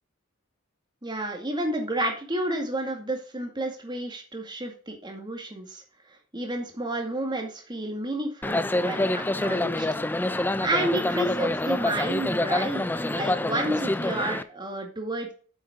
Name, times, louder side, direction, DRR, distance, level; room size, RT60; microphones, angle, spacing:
voice 1, 1.0-5.8 6.3-9.9 10.6-15.3, right 1 dB, 20° right, 2 dB, 2.2 m, -30 dB
sound 1, 8.4-14.4, left 1 dB, 10° left, 0.4 m, -26 dB
8.6 x 7.7 x 3.7 m, 0.39 s
head